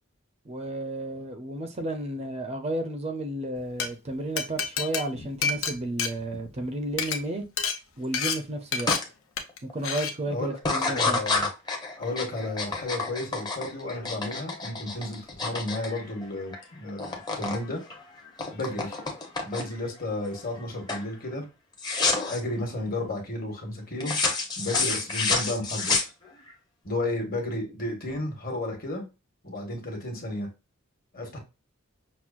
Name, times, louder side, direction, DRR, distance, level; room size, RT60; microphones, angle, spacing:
voice 1, 0.5-7.4 8.0-8.9 9.6-11.2, right 1 dB, 30° right, 0.5 m, -32 dB
Glass, 3.6-3.9 4.4-6.6 6.9-7.2 7.6-7.8 8.1-8.4 8.7-9.0 9.4-9.6 9.8-10.1, left 6 dB, 70° left, 0.7 m, -28 dB
sound 1, 8.9-9.0 9.5-9.9 10.6-16.6 16.9-17.6 17.9-19.9 20.3-20.6 20.9-21.1 21.8-22.4 24.0-26.5, left 3 dB, 20° left, 0.7 m, -29 dB
voice 2, 10.3-11.5 12.0-17.8 18.5-19.0 19.4-21.5 22.3-24.2 24.6-26.1 26.8-29.0 29.4-30.5 31.1-31.4, left 2 dB, 45° left, 1.3 m, -33 dB
6.0 x 2.0 x 2.4 m
head